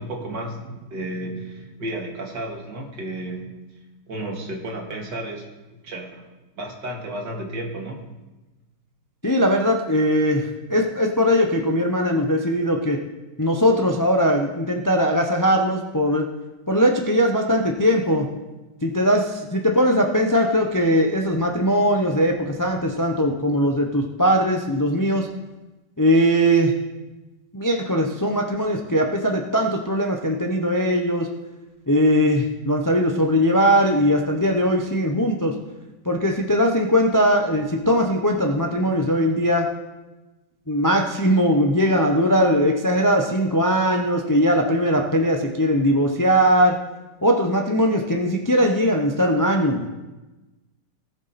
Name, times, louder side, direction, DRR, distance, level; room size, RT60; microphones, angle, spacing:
voice 1, 0.0-3.5 4.1-5.5 5.7-6.2 6.6-8.0, right 1 dB, 80° right, 0 dB, 2.7 m, -32 dB
voice 2, 9.2-13.0 13.4-16.3 16.7-18.3 18.8-25.3 26.0-26.7 27.5-31.3 31.9-35.5 36.0-39.7 40.7-46.8 47.2-49.9, equal, 25° left, 2 dB, 0.4 m, -20 dB
18.5 x 7.2 x 4.2 m, 1.1 s
omnidirectional pair, 1.9 m